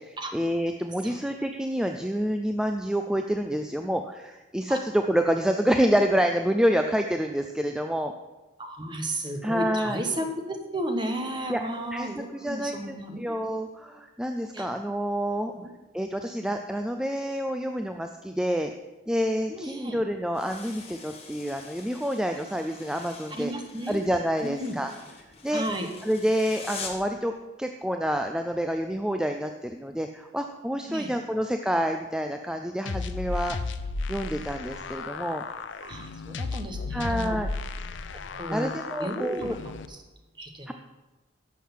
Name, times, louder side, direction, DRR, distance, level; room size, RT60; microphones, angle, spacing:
voice 1, 0.0-8.1 9.4-10.0 11.5-11.6 11.9-15.5 15.9-18.7 19.1-23.5 23.9-24.9 25.4-25.6 26.0-27.3 27.6-33.6 34.1-35.4 36.9-37.5 38.5-39.5 40.7-40.8, equal, 5° right, 5 dB, 0.3 m, -28 dB
voice 2, 8.6-13.3 14.5-14.7 15.6-15.7 19.5-20.0 23.3-24.1 24.4-24.8 25.5-25.9 30.9-31.1 35.8-37.4 38.3-38.7 39.0-40.0 40.4-40.7, right 1 dB, 25° right, 5 dB, 1.1 m, -33 dB
sound 1, 20.3-27.1, left 4 dB, 30° left, 1.3 m, -44 dB
sound 2, 32.9-39.9, left 3 dB, 75° left, 0.6 m, -34 dB
11.5 x 6.5 x 5.7 m, 1.1 s
head